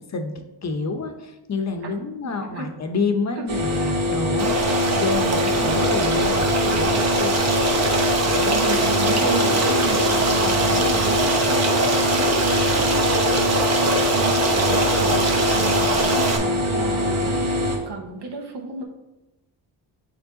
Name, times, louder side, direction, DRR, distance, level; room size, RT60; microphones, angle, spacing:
voice 1, 0.1-7.4, left 4 dB, 35° left, 6 dB, 0.8 m, -28 dB
voice 2, 2.2-2.7 3.3-3.4 8.0-18.8, right 4 dB, 60° right, 2 dB, 1.1 m, -33 dB
sound 1, 3.5-17.8, left 1 dB, 90° right, 1.6 m, -23 dB
Stream, 4.4-16.4, right 2 dB, 35° right, 1.0 m, -22 dB
7.2 x 3.3 x 3.9 m, 0.97 s
cardioid pair, 95°, 46 cm